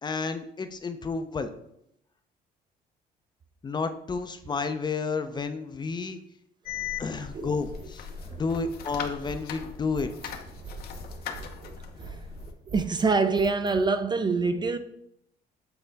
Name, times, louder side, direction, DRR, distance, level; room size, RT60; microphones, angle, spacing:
voice 1, 0.0-1.5 3.6-6.2 7.0-8.1 8.3-10.3, left 4 dB, 25° left, 0.5 m, -31 dB
sound 1, 6.7-12.5, left 8 dB, 65° left, 0.8 m, -39 dB
sound 2, 7.0-13.9, right 4 dB, 65° right, 2.1 m, -43 dB
voice 2, 10.9-11.5 12.0-12.3 12.7-14.8, right 4 dB, 25° right, 0.4 m, -26 dB
7.9 x 4.2 x 3.4 m
cardioid pair, 110°, 17 cm